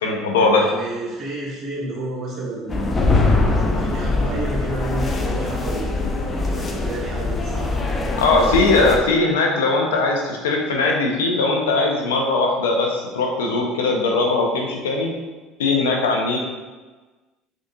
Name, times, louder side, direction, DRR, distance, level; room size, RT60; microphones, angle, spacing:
voice 1, 0.0-0.6 8.2-15.1 15.6-16.4, left 3 dB, 85° left, 0 dB, 0.5 m, -20 dB
voice 2, 0.5-3.0 3.7-6.2 6.5-7.7, right 2 dB, 40° right, -5 dB, 1.4 m, -30 dB
sound 1, 2.7-9.0, left 2 dB, 30° left, 0.5 m, -22 dB
3.8 x 3.6 x 2.3 m, 1.3 s
hypercardioid pair, 70°, 0 cm